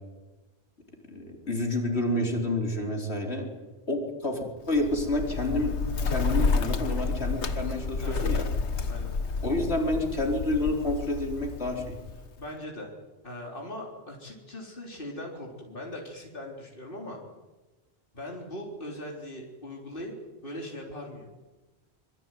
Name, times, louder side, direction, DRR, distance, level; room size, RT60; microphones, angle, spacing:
voice 1, 1.1-3.5 3.9-5.8 6.0-8.4 9.4-12.0, left 1 dB, 75° left, 1 dB, 4.5 m, -29 dB
Bird, 4.7-12.5, left 4 dB, 90° left, 1.7 m, -30 dB
voice 2, 12.4-13.0 13.2-17.2 18.1-20.1 20.4-21.3, left 1 dB, 55° left, 0 dB, 4.2 m, -40 dB
25.5 x 23.5 x 9.3 m, 1.2 s
omnidirectional pair, 1.1 m